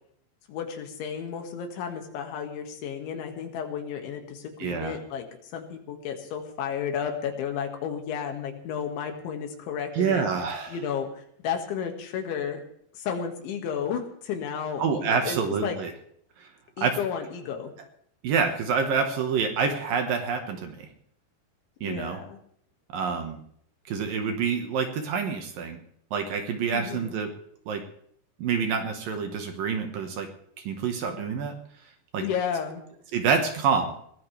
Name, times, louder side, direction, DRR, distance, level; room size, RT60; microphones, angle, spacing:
voice 1, 0.5-5.3 5.5-10.3 10.7-12.6 12.9-15.8 16.8-17.7 21.8-22.4 26.7-27.1 32.2-32.8, left 7 dB, 90° left, 4 dB, 4.5 m, -32 dB
voice 2, 4.6-5.0 9.9-10.8 14.8-15.9 16.4-16.5 16.8-17.0 18.2-20.9 21.8-22.2 22.9-23.4 23.9-25.8 26.1-27.3 27.7-27.8 28.4-30.3 30.6-31.5 32.1-32.2 33.1-33.9, right 6 dB, 60° right, 5 dB, 2.8 m, -27 dB
22.0 x 18.5 x 3.5 m, 0.66 s
omnidirectional pair, 5.2 m